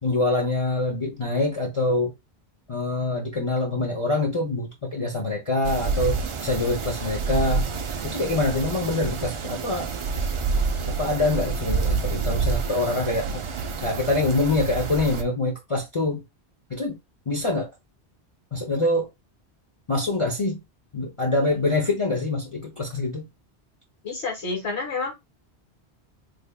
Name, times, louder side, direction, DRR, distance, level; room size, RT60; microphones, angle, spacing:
voice 1, 0.0-2.1 2.7-7.6 8.0-9.9 10.9-13.4 13.8-16.2 16.7-16.9 17.3-17.7 18.5-19.1 19.9-20.6 20.9-23.2, left 2 dB, 35° left, 0.7 m, -25 dB
sound 1, 5.6-15.2, right 5 dB, 55° right, 0.3 m, -28 dB
voice 2, 24.0-25.1, left 4 dB, 80° left, 1.9 m, -29 dB
3.4 x 3.4 x 2.3 m
omnidirectional pair, 1.1 m